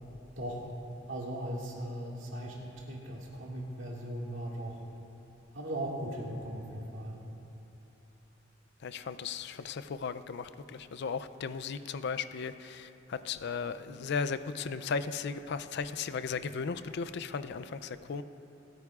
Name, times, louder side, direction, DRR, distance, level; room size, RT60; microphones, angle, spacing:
voice 1, 0.4-0.7 1.1-4.8 5.5-7.2, right 1 dB, 75° right, -2 dB, 2.0 m, -38 dB
voice 2, 8.8-18.2, left 5 dB, 60° left, 12 dB, 0.4 m, -36 dB
27.5 x 9.3 x 2.4 m, 2.9 s
head